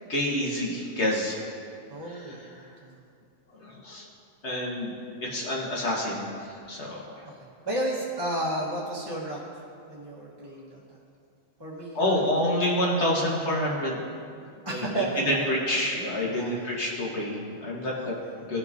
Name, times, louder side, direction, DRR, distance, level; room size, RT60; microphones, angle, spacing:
voice 1, 0.1-1.4 2.1-2.3 3.6-4.1 4.4-4.9 5.2-7.3 11.9-14.0 14.7-14.8 15.2-18.1 18.4-18.6, left 1 dB, 70° left, -3 dB, 1.7 m, -28 dB
voice 2, 1.9-3.0 7.2-7.3 7.6-9.4 9.9-11.0 11.6-12.5 14.6-15.5 16.3-16.8 17.9-18.3, right 1 dB, 20° right, -7 dB, 1.2 m, -33 dB
17.5 x 6.0 x 2.6 m, 2.4 s
omnidirectional pair, 1.2 m